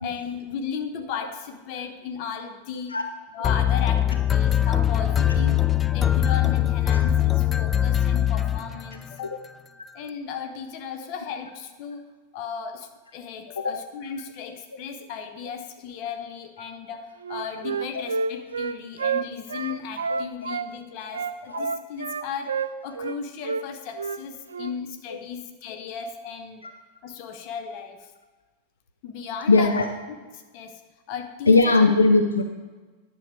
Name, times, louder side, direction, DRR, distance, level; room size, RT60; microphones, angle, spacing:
voice 1, 0.0-3.0 3.3-5.6 5.9-9.4 9.9-12.1 12.3-26.7 27.0-28.1 29.0-30.8 31.1-31.7, left 6 dB, 45° left, 6 dB, 1.0 m, -35 dB
sound 1, 3.4-9.1, left 10 dB, 20° left, 0.3 m, -22 dB
Wind instrument woodwind instrument, 17.2-20.7 21.1-23.2 23.4-23.6 23.9-24.2 24.5-24.7, right 5 dB, 70° right, 0.3 m, -29 dB
voice 2, 29.5-29.9 31.5-32.4, left 3 dB, 75° left, 5 dB, 0.6 m, -19 dB
10.0 x 6.4 x 4.7 m, 1.3 s
figure-of-eight pair, 90°, 0 cm